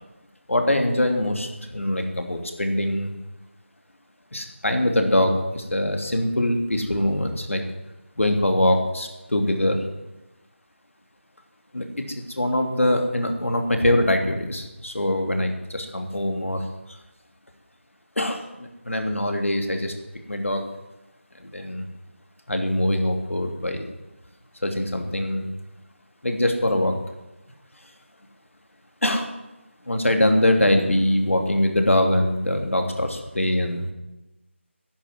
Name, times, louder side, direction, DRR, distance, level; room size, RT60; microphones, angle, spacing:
voice 1, 0.5-3.1 4.3-7.6 8.2-9.9 11.7-17.0 18.2-19.9 20.3-20.7 21.4-21.9 22.5-23.8 24.6-25.5 26.2-26.9 29.0-29.3 29.9-33.9, left 1 dB, 80° left, 4 dB, 3.1 m, -23 dB
12.0 x 10.5 x 9.5 m, 1.0 s
figure-of-eight pair, 170°, 7 cm